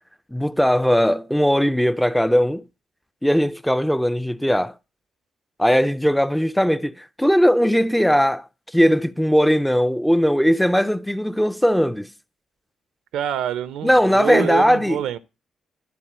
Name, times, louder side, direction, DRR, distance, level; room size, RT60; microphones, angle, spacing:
voice 1, 0.3-2.6 3.2-4.7 5.6-8.4 8.7-12.1 13.8-15.0, equal, 5° left, 0.4 m, -19 dB
voice 2, 13.1-15.2, right 10 dB, 90° right, 0.6 m, -26 dB
12.0 x 4.2 x 7.4 m
cardioid pair, 85°, 0 cm